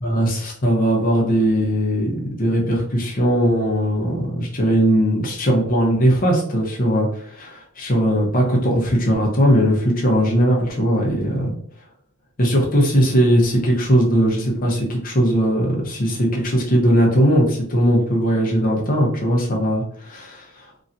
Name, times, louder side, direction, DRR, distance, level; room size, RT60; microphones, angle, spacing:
voice 1, 0.0-11.5 12.4-20.4, equal, 40° left, -2 dB, 0.8 m, -19 dB
3.1 x 2.7 x 2.6 m, 0.62 s
head